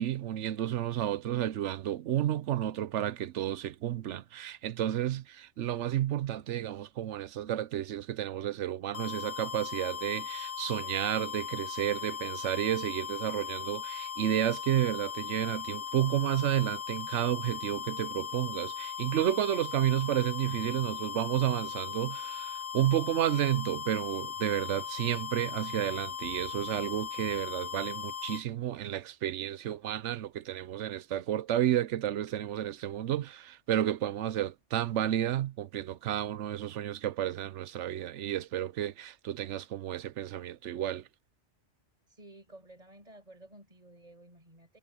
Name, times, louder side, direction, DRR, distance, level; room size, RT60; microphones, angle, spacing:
voice 1, 0.0-41.0, right 12 dB, 80° right, 1.0 m, -31 dB
sound 1, 8.9-28.4, left 8 dB, 85° left, 1.6 m, -38 dB
voice 2, 42.1-44.8, right 1 dB, 30° right, 5.3 m, -53 dB
omnidirectional pair, 1.2 m